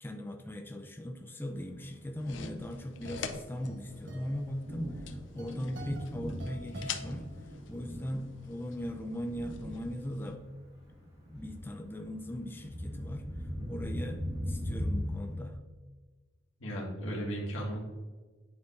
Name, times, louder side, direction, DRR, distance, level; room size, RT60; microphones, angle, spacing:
voice 1, 0.0-7.3 7.7-10.4 11.3-13.3 13.7-15.6, equal, 10° left, 4 dB, 0.4 m, -39 dB
Thunder, 1.7-15.4, equal, 35° right, 1.9 m, -40 dB
sound 1, 2.2-10.3, left 7 dB, 70° left, 0.5 m, -46 dB
sound 2, 2.4-7.9, right 1 dB, 65° right, 1.3 m, -48 dB
voice 2, 13.6-13.9 16.6-17.8, equal, 85° left, -2 dB, 1.9 m, -36 dB
9.5 x 4.4 x 2.6 m, 1.3 s
head